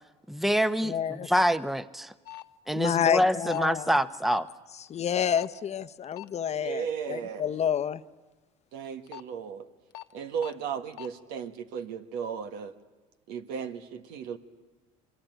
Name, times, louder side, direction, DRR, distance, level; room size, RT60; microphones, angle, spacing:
voice 1, 0.3-2.1 2.7-4.5, equal, ahead, 13 dB, 1.0 m, -26 dB
voice 2, 0.8-1.3 2.7-3.9 4.9-8.0, left 8 dB, 40° left, 13 dB, 0.9 m, -29 dB
sound 1, 2.3-2.4 3.5-3.7 4.3-4.5 5.4-5.6 6.1-6.3 8.8-9.2 9.9-10.1 10.4-10.5 10.9-11.1, left 16 dB, 75° left, 0.8 m, -42 dB
voice 3, 6.5-7.5 8.7-9.7 10.1-12.7 13.3-14.4, right 7 dB, 75° right, 8 dB, 1.7 m, -35 dB
26.0 x 24.0 x 9.2 m, 1.3 s
supercardioid pair, 80°, 16 cm